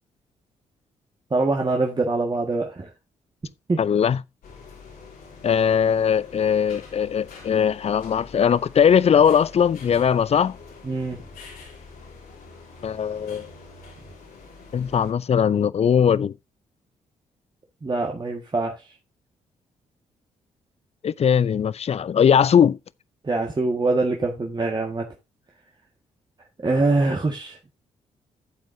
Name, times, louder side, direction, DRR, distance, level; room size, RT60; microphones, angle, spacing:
voice 1, 1.3-2.9 3.7-3.8 10.8-11.2 17.8-18.8 23.2-25.1 26.6-27.6, right 3 dB, 30° right, 1.8 m, -24 dB
voice 2, 3.8-4.2 5.4-10.6 12.8-13.5 14.7-16.3 21.0-22.8, left 8 dB, 40° left, 0.5 m, -20 dB
sound 1, 4.4-15.1, left 4 dB, 70° left, 3.4 m, -45 dB
13.5 x 7.7 x 2.7 m
hypercardioid pair, 40°, 15 cm